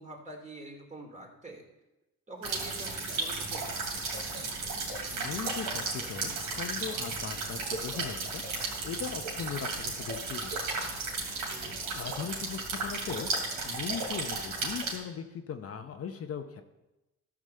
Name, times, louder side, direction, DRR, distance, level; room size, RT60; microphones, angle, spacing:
voice 1, 0.0-1.6 2.3-3.8 11.5-11.8, right 1 dB, 25° right, 1 dB, 2.6 m, -46 dB
sound 1, 2.4-15.0, right 3 dB, 85° right, 2.9 m, -34 dB
voice 2, 5.1-10.5 11.9-16.6, left 7 dB, 50° left, 6 dB, 0.8 m, -39 dB
13.0 x 4.9 x 6.7 m, 0.99 s
cardioid pair, 90°, 30 cm